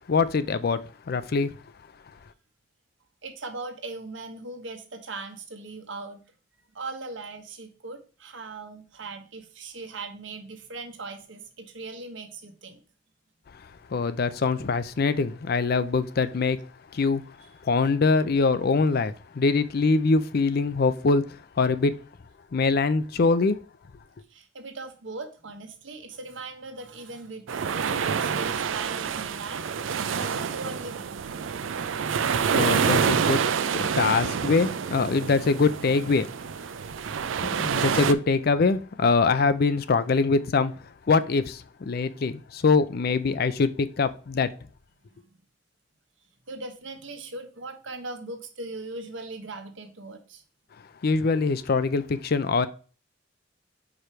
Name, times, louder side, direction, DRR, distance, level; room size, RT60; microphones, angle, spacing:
voice 1, 0.1-0.8 1.1-1.5 13.9-16.6 16.9-17.2 17.6-21.2 21.6-21.9 22.5-23.6 32.5-33.4 33.7-36.3 37.6-40.7 41.1-44.5 51.0-52.7, left 4 dB, 55° left, 0.5 m, -23 dB
voice 2, 3.2-6.2 6.7-12.8 24.3-31.2 36.8-36.9 37.4-37.6 46.5-50.4, right 3 dB, 75° right, 1.2 m, -39 dB
sound 1, 27.5-38.1, right 6 dB, 90° right, 0.5 m, -27 dB
4.9 x 4.8 x 4.4 m
head